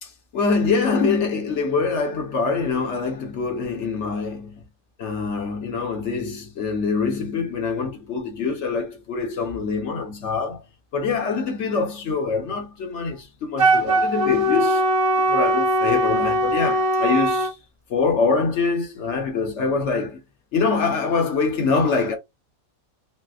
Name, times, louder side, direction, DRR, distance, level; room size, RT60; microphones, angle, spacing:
voice 1, 0.0-4.6 5.0-10.6 10.9-14.9 15.3-17.6 17.9-20.2 20.5-22.2, left 4 dB, 60° left, 1.0 m, -24 dB
Wind instrument woodwind instrument, 13.6-17.5, right 1 dB, 30° right, 0.6 m, -20 dB
4.0 x 2.1 x 2.3 m
omnidirectional pair, 1.5 m